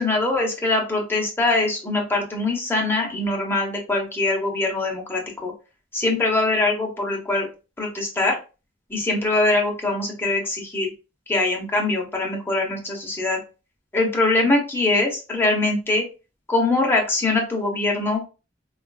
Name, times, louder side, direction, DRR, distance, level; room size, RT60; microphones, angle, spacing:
voice 1, 0.0-5.5 5.9-7.5 7.8-8.4 8.9-10.9 11.3-13.4 13.9-16.0 16.5-18.3, left 2 dB, 10° left, -1 dB, 0.9 m, -22 dB
4.4 x 2.4 x 2.3 m, 0.31 s
head